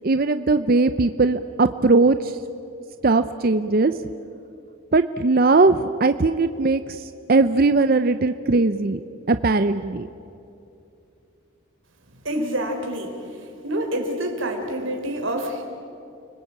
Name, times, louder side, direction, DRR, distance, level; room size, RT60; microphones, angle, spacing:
voice 1, 0.0-2.3 3.0-3.9 4.9-6.8 7.3-10.1, right 3 dB, 45° right, 10 dB, 0.6 m, -19 dB
voice 2, 12.2-13.2 13.6-15.6, right 1 dB, 70° right, 4 dB, 3.7 m, -27 dB
30.0 x 20.5 x 8.7 m, 2.7 s
head